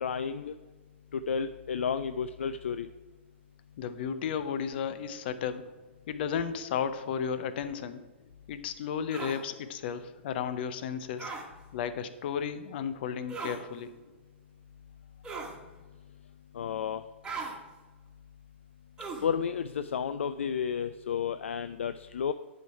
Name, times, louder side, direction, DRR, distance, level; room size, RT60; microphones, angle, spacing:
voice 1, 0.0-0.5 1.1-2.9 16.5-17.0 19.2-22.3, left 7 dB, 70° left, 12 dB, 0.3 m, -32 dB
voice 2, 3.8-5.6 6.1-8.0 8.5-11.3 11.7-13.9, left 7 dB, 55° left, 12 dB, 0.7 m, -33 dB
sound 1, 9.1-9.4 11.2-11.5 13.3-13.6 15.2-15.6 17.2-17.6 19.0-19.3, right 4 dB, 15° right, 1.5 m, -38 dB
10.5 x 4.6 x 4.7 m, 1.3 s
figure-of-eight pair, 110°, 7 cm